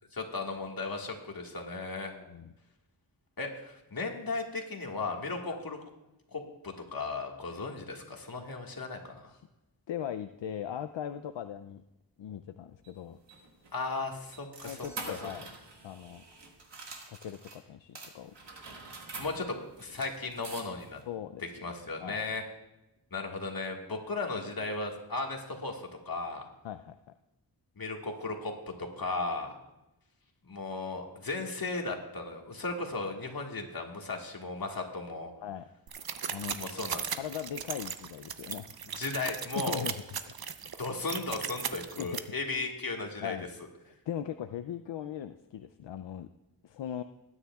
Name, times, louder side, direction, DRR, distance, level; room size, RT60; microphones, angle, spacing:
voice 1, 0.1-2.1 3.4-5.8 6.3-9.3 13.7-14.8 15.1-15.3 19.2-21.0 21.6-22.4 23.1-26.5 27.8-28.5 28.8-29.6 30.5-35.3 36.5-37.2 39.0-39.9 40.8-43.4, left 3 dB, 50° left, 2 dB, 1.8 m, -36 dB
voice 2, 2.1-2.5 5.5-5.6 9.3-9.4 9.9-11.8 12.2-13.2 14.6-15.5 15.8-16.2 17.1-18.3 21.1-21.7 22.0-22.3 26.6-27.0 35.4-35.7 36.3-36.6 37.2-38.7 39.7-39.9 42.0-42.3 43.2-43.5 43.9-46.3 46.6-47.0, left 10 dB, 75° left, 10 dB, 0.5 m, -39 dB
sound 1, 12.8-17.6 17.9-21.0, right 3 dB, 70° right, 1.9 m, -46 dB
sound 2, 35.9-42.2, right 7 dB, 55° right, 0.7 m, -37 dB
20.5 x 9.8 x 2.4 m, 0.94 s
wide cardioid pair, 80°, 44 cm